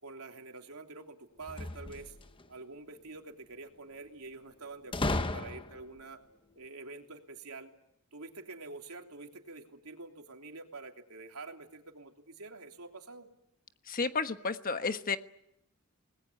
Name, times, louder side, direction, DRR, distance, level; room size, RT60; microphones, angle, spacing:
voice 1, 0.0-2.2 2.5-6.2 6.5-7.7 8.1-13.3, right 3 dB, 80° right, 3 dB, 3.2 m, -47 dB
sound 1, 1.4-2.5 4.9-6.0, left 2 dB, 25° left, 0.9 m, -34 dB
voice 2, 13.9-15.2, left 4 dB, 40° left, 9 dB, 1.3 m, -32 dB
28.0 x 20.5 x 9.4 m, 0.81 s
head